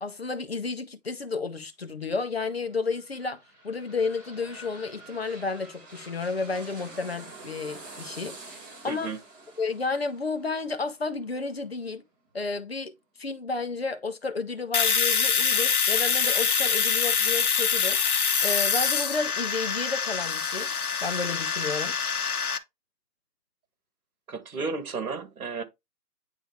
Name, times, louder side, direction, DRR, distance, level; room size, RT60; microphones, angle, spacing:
voice 1, 0.0-8.4 8.8-9.1 9.6-12.0 12.3-18.0 18.4-20.7 21.0-22.0, left 4 dB, 40° left, 0.6 m, -32 dB
sound 1, 2.7-12.3 12.7-12.8, right 2 dB, 25° right, 4.5 m, -47 dB
voice 2, 8.9-9.2 24.3-25.6, right 4 dB, 60° right, 1.7 m, -33 dB
Domestic sounds home sounds, 14.7-22.6, left 6 dB, 65° left, 1.0 m, -25 dB
9.2 x 3.3 x 3.2 m
hypercardioid pair, 160°, 48 cm